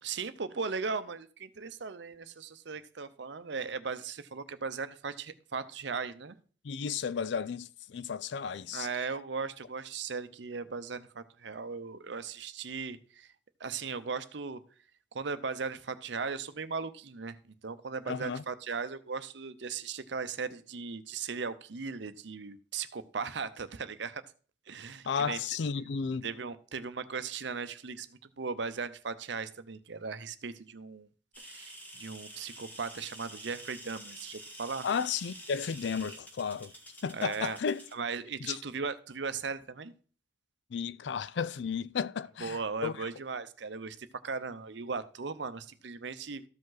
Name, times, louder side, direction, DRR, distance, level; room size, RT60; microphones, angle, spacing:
voice 1, 0.0-6.3 8.7-13.3 13.6-14.6 15.1-24.2 24.7-25.4 26.2-28.1 28.4-31.1 31.4-34.9 37.1-37.6 37.9-39.9 42.4-46.4, right 5 dB, 65° right, 0.7 m, -37 dB
voice 2, 6.6-8.9 18.1-18.4 25.0-26.3 34.8-36.7 37.0-37.8 38.4-38.6 40.7-43.1, left 6 dB, 65° left, 0.4 m, -33 dB
sound 1, 31.3-37.9, equal, 10° left, 1.7 m, -48 dB
13.5 x 5.2 x 3.9 m
head